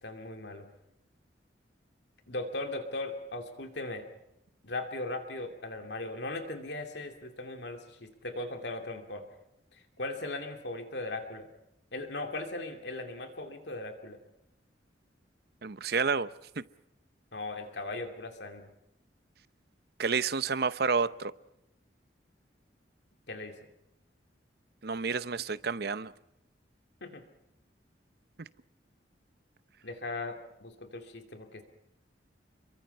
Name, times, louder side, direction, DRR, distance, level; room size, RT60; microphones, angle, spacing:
voice 1, 0.0-0.7 2.3-4.0 4.6-9.2 10.0-11.5 11.9-14.2 17.3-18.7 23.3-23.6 27.0-27.2 29.8-31.6, left 2 dB, 70° left, 5 dB, 2.7 m, -38 dB
voice 2, 15.6-16.3 16.6-16.7 20.0-21.3 24.8-26.1, right 5 dB, 60° right, 15 dB, 0.8 m, -29 dB
29.0 x 23.0 x 5.5 m, 0.84 s
head